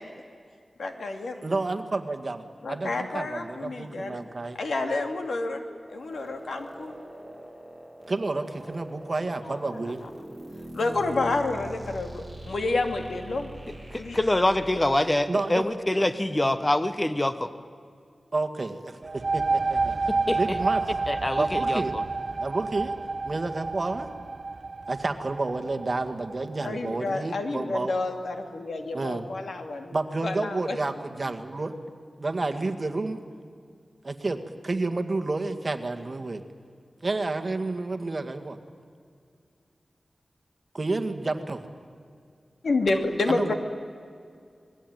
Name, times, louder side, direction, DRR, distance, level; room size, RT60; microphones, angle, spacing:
voice 1, 0.8-1.6 2.6-4.2 4.6-5.6 5.9-7.0 9.4-10.1 10.7-13.5 14.0-14.2 26.6-29.9 30.2-30.8 42.6-43.5, left 2 dB, 90° left, 5 dB, 2.7 m, -29 dB
voice 2, 1.4-2.4 2.7-4.6 8.1-10.0 15.3-15.7 18.3-20.8 21.4-22.0 22.4-22.9 23.2-24.1 24.9-27.9 28.9-29.2 29.9-31.7 32.2-33.2 34.0-36.4 37.0-38.6 40.7-41.7 43.3-43.5, right 3 dB, 40° right, 6 dB, 1.9 m, -30 dB
sound 1, 5.9-14.8, equal, 10° right, 7.9 m, -43 dB
voice 3, 13.9-17.5 20.3-20.4 21.1-22.0, left 1 dB, 20° left, 12 dB, 1.0 m, -25 dB
sound 2, 19.0-26.5, right 3 dB, 60° right, 1.0 m, -29 dB
27.5 x 21.0 x 9.3 m, 2.2 s
wide cardioid pair, 105°, 0 cm